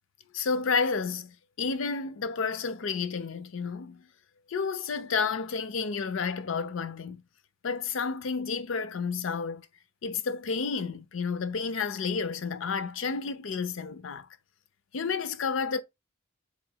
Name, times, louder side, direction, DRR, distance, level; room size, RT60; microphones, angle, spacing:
voice 1, 0.3-4.1 4.5-7.2 7.6-9.6 10.0-14.3 14.9-15.8, left 5 dB, 70° left, 0.5 m, -31 dB
4.1 x 3.1 x 2.7 m
head